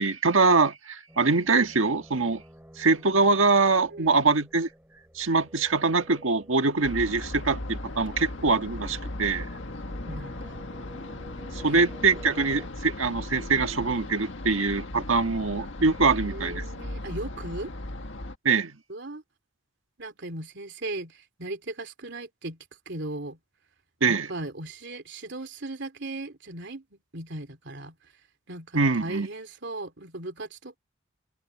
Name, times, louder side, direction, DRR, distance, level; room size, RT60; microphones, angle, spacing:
voice 1, 0.0-2.4 2.8-4.7 5.1-9.5 11.5-16.6 18.4-18.7 24.0-24.3 28.7-29.3, right 4 dB, 80° right, 1.6 m, -23 dB
sound 1, 1.1-12.7, equal, 10° right, 5.5 m, -50 dB
sound 2, 6.8-18.4, left 1 dB, 65° left, 1.7 m, -37 dB
voice 2, 10.1-10.6 11.6-11.8 12.1-12.7 16.1-17.7 18.9-19.2 20.0-22.6 22.9-23.4 24.1-28.0 28.5-30.8, right 2 dB, 60° right, 3.1 m, -38 dB
head